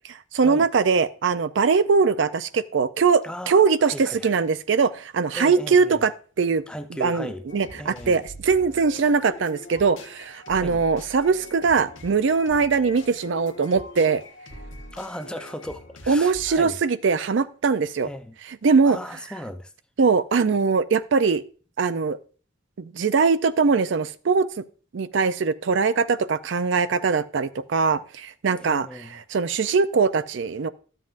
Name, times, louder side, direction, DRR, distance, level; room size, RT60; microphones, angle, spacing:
voice 1, 0.1-6.1 6.4-6.6 7.0-14.2 16.1-18.1 18.6-19.0 20.0-21.4 21.8-22.2 22.8-24.5 24.9-30.7, right 5 dB, 70° right, 0.4 m, -21 dB
voice 2, 3.2-4.3 5.3-6.0 6.7-7.4 7.7-8.2 10.5-10.8 14.9-16.8 18.0-18.4 18.8-19.7 28.6-29.2, equal, 5° left, 0.5 m, -36 dB
sound 1, 7.5-16.7, left 2 dB, 85° left, 1.3 m, -43 dB
12.5 x 7.5 x 2.5 m
head